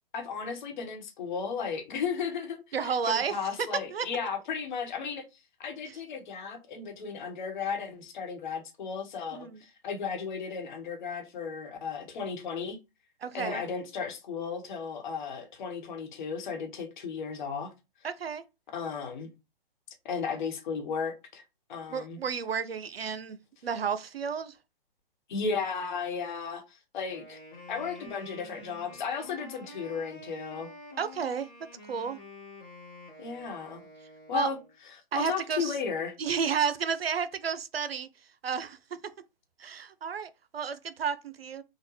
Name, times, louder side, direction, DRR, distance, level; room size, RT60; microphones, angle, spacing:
voice 1, 0.1-5.2 5.6-12.8 13.3-17.7 18.7-19.3 20.0-21.4 21.7-22.2 25.3-27.4 27.7-30.7 33.2-33.8 34.3-34.6 35.1-36.1, left 6 dB, 55° left, 1.1 m, -35 dB
voice 2, 2.7-4.1 5.9-6.0 9.3-9.6 13.2-13.6 18.0-18.4 21.9-23.4 23.6-24.6 31.0-32.2 34.3-34.5 35.1-35.7 36.2-38.1 38.4-38.8 39.0-39.1 39.6-41.6, right 6 dB, 90° right, 0.5 m, -32 dB
Wind instrument woodwind instrument, 27.1-34.7, left 2 dB, 15° left, 1.3 m, -48 dB
3.7 x 2.2 x 3.1 m
figure-of-eight pair, 120°, 29 cm